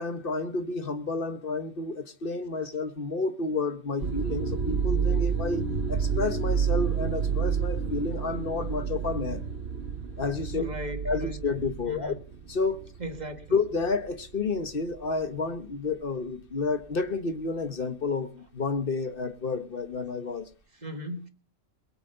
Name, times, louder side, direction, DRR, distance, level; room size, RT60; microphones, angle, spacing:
voice 1, 0.0-9.4 10.2-10.7 11.0-12.1 12.5-12.8 13.5-20.5, left 4 dB, 45° left, 1.4 m, -30 dB
sound 1, 4.0-13.4 13.8-14.2 15.0-15.2, right 6 dB, 50° right, 1.3 m, -29 dB
voice 2, 10.5-11.4 11.8-12.2 13.0-13.5 20.8-21.3, equal, 35° right, 1.8 m, -37 dB
22.0 x 7.8 x 5.6 m
omnidirectional pair, 1.4 m